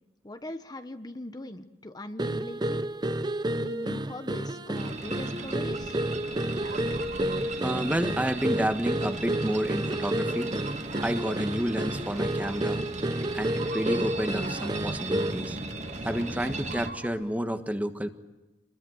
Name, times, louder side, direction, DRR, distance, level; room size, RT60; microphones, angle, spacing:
voice 1, 0.2-2.8 3.5-6.0, left 1 dB, 25° left, 8 dB, 1.1 m, -40 dB
sound 1, 2.2-15.5, right 1 dB, 25° right, 0.8 m, -31 dB
sound 2, 4.7-16.9, right 2 dB, 40° right, 2.1 m, -37 dB
sound 3, 6.6-7.9 9.0-9.6 10.2-11.4 11.8-12.0 12.4-12.6 13.4-15.3 16.1-17.1, right 3 dB, 60° right, 5.6 m, -44 dB
voice 2, 7.6-10.5 11.0-12.8 13.3-15.6 16.0-18.1, equal, 10° right, 8 dB, 1.4 m, -30 dB
26.5 x 21.5 x 7.9 m, 1.0 s
head